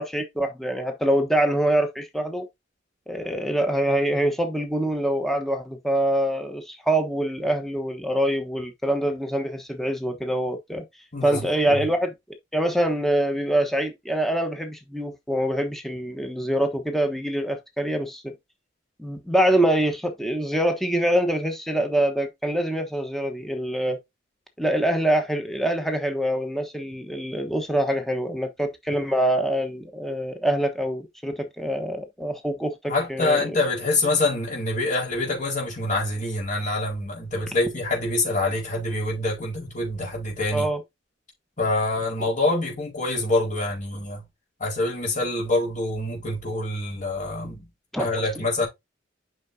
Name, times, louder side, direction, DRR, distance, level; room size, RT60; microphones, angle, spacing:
voice 1, 0.0-2.4 3.1-10.8 11.2-12.1 12.5-18.3 19.0-24.0 24.6-33.6 40.5-40.8 47.9-48.1, right 1 dB, ahead, 1.2 m, -25 dB
voice 2, 11.1-11.9 32.9-40.7 41.6-44.2 44.6-47.6 48.0-48.7, left 2 dB, 40° left, 4.6 m, -26 dB
8.5 x 6.0 x 2.7 m
head